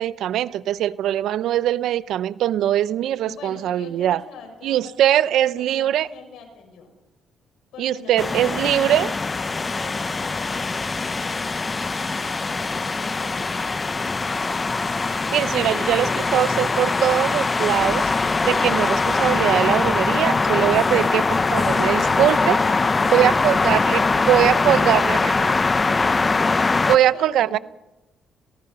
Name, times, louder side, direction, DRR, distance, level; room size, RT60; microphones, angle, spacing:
voice 1, 0.0-4.2 4.6-6.1 7.8-9.1 15.1-18.1 18.4-22.6 23.1-24.0 24.3-25.5 26.9-27.6, right 12 dB, 80° right, 0.6 m, -21 dB
voice 2, 3.2-6.9 7.7-9.0 9.3-14.3 21.4-23.2 26.2-27.6, left 5 dB, 80° left, 6.4 m, -42 dB
sound 1, 8.2-27.0, left 3 dB, 30° left, 0.8 m, -22 dB
26.0 x 18.0 x 5.6 m
cardioid pair, 90°, 0 cm